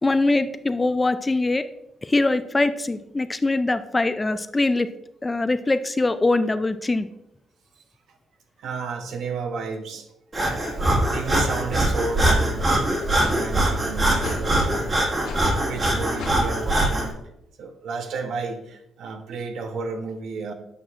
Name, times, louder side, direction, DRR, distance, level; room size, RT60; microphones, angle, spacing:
voice 1, 0.0-1.6 2.0-4.9 5.2-7.1, left 2 dB, 20° left, 12 dB, 0.4 m, -22 dB
voice 2, 8.6-10.1 10.8-12.7 13.1-15.0 15.6-17.2 17.6-20.5, right 4 dB, 75° right, 6 dB, 0.9 m, -32 dB
Breathing, 10.3-17.1, right 1 dB, 35° right, 1.8 m, -22 dB
sound 1, 12.2-12.5 13.2-13.4 14.2-14.5 15.2-15.5 16.2-16.4, left 3 dB, 80° left, 1.0 m, -33 dB
8.5 x 5.9 x 2.5 m, 0.83 s
cardioid pair, 90°, 0 cm